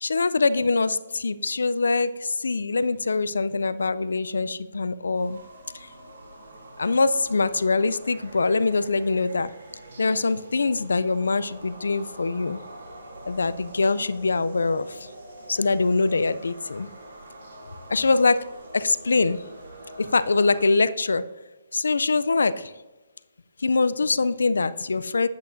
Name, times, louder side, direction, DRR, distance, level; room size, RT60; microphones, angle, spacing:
voice 1, 0.0-5.4 6.8-9.5 10.0-12.6 13.3-15.0 15.5-16.9 17.9-18.4 18.7-19.4 20.0-21.2 21.7-22.7 23.6-25.3, left 3 dB, 90° left, 15 dB, 0.3 m, -23 dB
sound 1, 5.1-20.6, right 1 dB, 70° right, 2.4 m, -45 dB
8.1 x 8.1 x 2.6 m, 1.1 s
hypercardioid pair, 155°, 0 cm